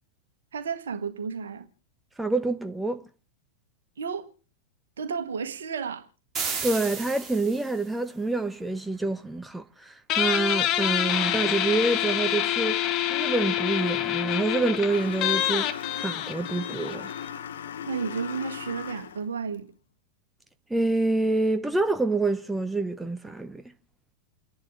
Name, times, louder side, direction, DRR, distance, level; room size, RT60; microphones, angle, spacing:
voice 1, 0.5-1.7 4.0-4.3 5.0-6.1 17.9-19.7, right 6 dB, 65° right, 1.7 m, -32 dB
voice 2, 2.2-3.1 6.6-12.8 13.1-15.7 16.0-17.1 20.7-23.6, right 2 dB, 5° right, 0.8 m, -27 dB
sound 1, 6.3-7.9, right 6 dB, 25° right, 2.3 m, -33 dB
Guitar, 10.1-17.3, left 12 dB, 35° left, 1.4 m, -27 dB
sound 2, 14.9-19.3, left 9 dB, 65° left, 1.1 m, -37 dB
29.0 x 11.0 x 3.6 m
figure-of-eight pair, 90°, 0 cm